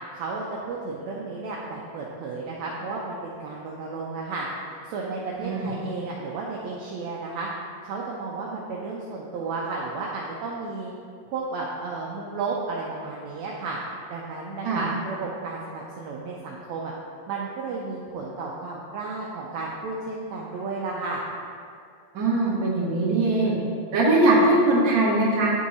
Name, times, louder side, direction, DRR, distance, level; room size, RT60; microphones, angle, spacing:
voice 1, 0.1-4.5 4.8-7.5 7.8-10.9 11.3-13.8 14.1-16.9 17.3-21.2, right 3 dB, 80° right, -3 dB, 1.5 m, -33 dB
voice 2, 5.4-5.7 14.6-14.8 22.1-23.5 23.9-25.5, right 2 dB, 50° right, -6 dB, 1.4 m, -21 dB
9.7 x 3.7 x 4.1 m, 2.3 s
omnidirectional pair, 3.8 m